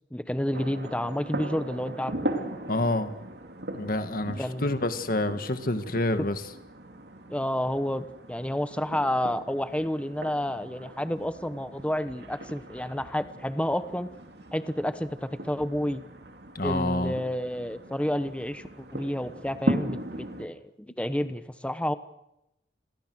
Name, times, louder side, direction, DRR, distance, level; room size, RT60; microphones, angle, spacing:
voice 1, 0.1-2.1 4.4-4.8 7.3-14.1 14.5-16.0 16.6-21.9, equal, 5° left, 11 dB, 1.0 m, -30 dB
sound 1, 0.5-20.5, right 1 dB, 70° right, 2.9 m, -38 dB
voice 2, 2.7-3.2 3.7-6.4 16.6-17.2, left 1 dB, 55° left, 9 dB, 1.9 m, -28 dB
29.5 x 22.0 x 6.4 m, 0.86 s
head